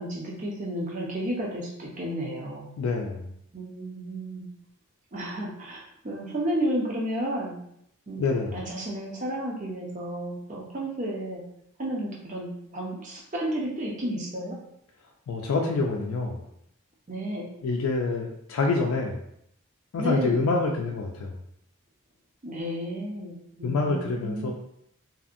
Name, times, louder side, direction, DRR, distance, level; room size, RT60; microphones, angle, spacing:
voice 1, 0.0-2.7 3.5-4.4 5.1-7.5 8.1-8.2 8.5-11.4 11.8-12.5 12.7-14.6 17.1-17.4 20.0-20.5 22.4-24.5, right 1 dB, 35° right, -3 dB, 0.6 m, -32 dB
voice 2, 2.8-3.3 8.2-8.6 15.3-16.4 17.6-19.2 19.9-21.3 23.6-24.5, left 3 dB, 85° left, 1 dB, 0.4 m, -26 dB
2.7 x 2.6 x 2.4 m, 0.75 s
head